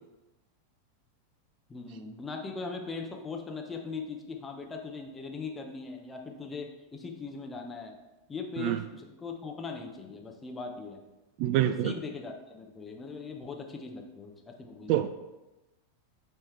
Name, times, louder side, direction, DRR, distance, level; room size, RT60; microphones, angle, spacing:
voice 1, 1.7-7.9 8.3-11.0 11.8-15.1, left 4 dB, 15° left, 2 dB, 1.0 m, -40 dB
voice 2, 11.4-11.9 14.9-15.1, right 12 dB, 45° right, 10 dB, 0.3 m, -26 dB
8.6 x 3.5 x 4.5 m, 1.1 s
figure-of-eight pair, 90°, 0 cm